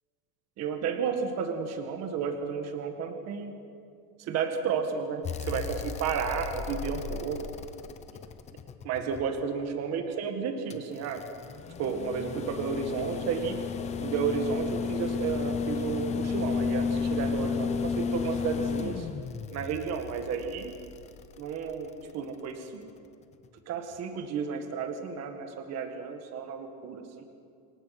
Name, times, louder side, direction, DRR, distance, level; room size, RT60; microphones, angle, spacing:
voice 1, 0.6-3.6 4.2-7.5 8.8-11.2 11.8-13.6 14.0-19.1 19.5-20.7 21.4-22.9 23.7-27.3, right 6 dB, 30° right, 6 dB, 1.8 m, -32 dB
sound 1, 5.2-9.4 10.7-21.9 23.4-23.5, left 5 dB, 15° left, 0.5 m, -33 dB
27.5 x 23.0 x 6.0 m, 2.4 s
supercardioid pair, 165°, 48 cm